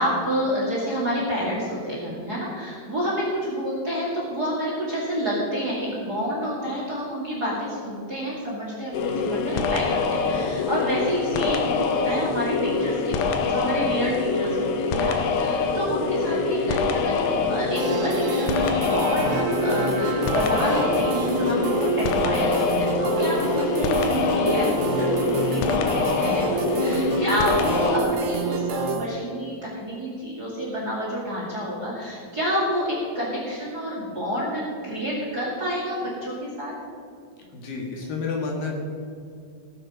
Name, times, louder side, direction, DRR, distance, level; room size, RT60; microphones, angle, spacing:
voice 1, 0.0-36.7, equal, 30° right, -5 dB, 2.2 m, -28 dB
sound 1, 8.9-28.0, left 4 dB, 85° left, 3.1 m, -25 dB
sound 2, 17.8-29.0, right 4 dB, 70° right, 2.6 m, -28 dB
voice 2, 37.5-38.7, left 4 dB, 65° left, -1 dB, 3.2 m, -30 dB
19.0 x 7.6 x 5.2 m, 2.4 s
omnidirectional pair, 4.7 m